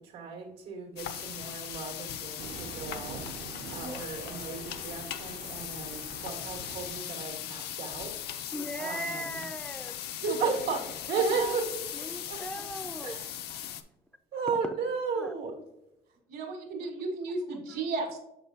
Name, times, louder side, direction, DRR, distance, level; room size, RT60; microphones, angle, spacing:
voice 1, 0.0-8.2 8.8-9.4 10.4-11.8 12.3-12.4 13.0-13.3 14.3-15.6, right 5 dB, 85° right, 2 dB, 1.7 m, -35 dB
sound 1, 1.0-13.8, left 10 dB, 75° left, 0.5 m, -39 dB
Thunder, 2.4-7.0, right 6 dB, 50° right, 0.6 m, -45 dB
voice 2, 8.5-10.0 11.9-13.2 15.2-15.3 16.8-16.9 17.7-17.8, right 1 dB, 5° left, 7 dB, 0.4 m, -39 dB
voice 3, 10.2-10.8 11.1-11.5 16.3-18.2, right 3 dB, 65° right, 2 dB, 1.7 m, -33 dB
6.6 x 5.6 x 2.7 m, 0.88 s
cardioid pair, 110°, 17 cm